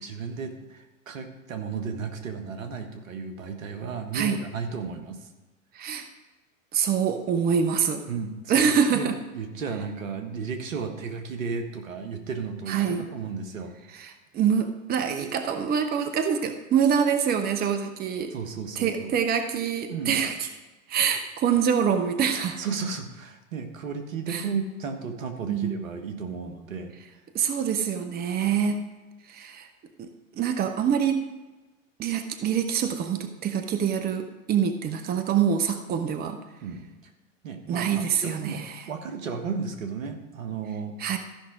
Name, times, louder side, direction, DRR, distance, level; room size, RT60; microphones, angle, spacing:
voice 1, 0.0-5.3 8.1-12.8 13.1-13.7 18.3-19.1 19.9-20.2 22.5-26.9 36.6-36.9 37.4-41.1, right 5 dB, 75° right, 6 dB, 1.5 m, -34 dB
voice 2, 5.7-6.1 6.7-8.0 8.5-9.1 12.7-13.1 14.0-18.3 18.8-20.4 20.9-22.6 24.3-24.4 25.5-25.9 27.3-28.8 29.3-29.7 30.0-31.3 32.0-36.4 37.7-38.7 41.0-41.2, right 7 dB, 25° right, 8 dB, 0.8 m, -25 dB
14.0 x 5.8 x 5.0 m, 1.2 s
hypercardioid pair, 100°, 40 cm